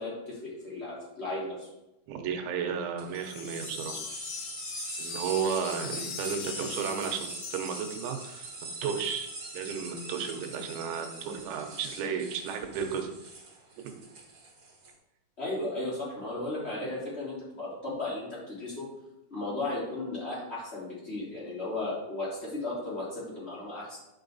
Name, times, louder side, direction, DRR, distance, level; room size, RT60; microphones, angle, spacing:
voice 1, 0.0-1.7 15.4-18.9 19.3-24.0, left 2 dB, 15° left, -7 dB, 2.6 m, -35 dB
voice 2, 2.1-4.0 5.0-8.5 8.8-13.1, right 7 dB, 80° right, 4 dB, 3.2 m, -33 dB
sound 1, 3.0-14.9, right 3 dB, 25° right, 2.3 m, -42 dB
sound 2, 3.2-8.5, left 7 dB, 75° left, 2.8 m, -41 dB
11.5 x 5.2 x 4.0 m, 0.92 s
omnidirectional pair, 5.5 m